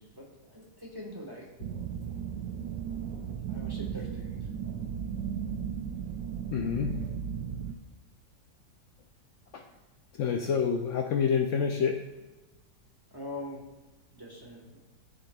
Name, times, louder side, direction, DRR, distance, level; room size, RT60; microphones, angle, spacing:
voice 1, 0.0-1.5 2.1-2.2 3.5-4.5 13.1-13.7 14.1-14.9, left 1 dB, 15° right, -2 dB, 1.0 m, -43 dB
sound 1, 1.6-7.8, right 8 dB, 80° right, 1.3 m, -35 dB
voice 2, 6.5-7.0 9.5-9.6 10.1-12.0, left 6 dB, 85° left, 3 dB, 0.6 m, -28 dB
10.5 x 7.3 x 2.3 m, 1.1 s
omnidirectional pair, 1.9 m